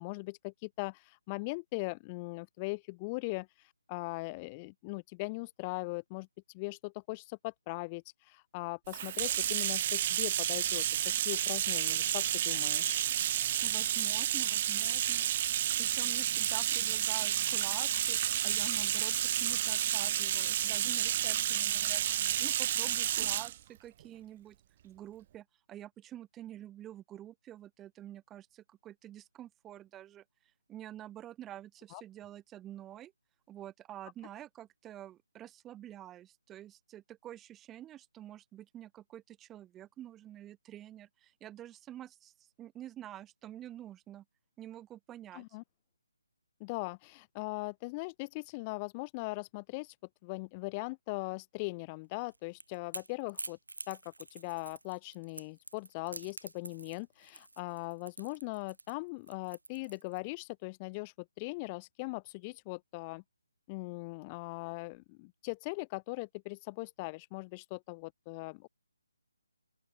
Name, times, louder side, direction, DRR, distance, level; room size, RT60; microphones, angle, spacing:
voice 1, 0.0-10.8 11.2-13.0 31.9-32.0 45.3-45.6 46.6-50.0 50.2-53.6 53.9-63.2 63.7-68.7, left 27 dB, 20° left, 0.6 m, -40 dB
Bathtub (filling or washing), 8.9-23.5, right 11 dB, 35° right, 0.6 m, -30 dB
voice 2, 13.6-15.3 15.8-22.0 22.4-24.6 24.8-30.2 30.7-33.1 33.5-44.2 44.6-45.4, right 12 dB, 10° right, 3.4 m, -48 dB
Crackle / Crack, 52.2-60.4, right 2 dB, 90° right, 4.0 m, -47 dB
open air
figure-of-eight pair, 155°, 0 cm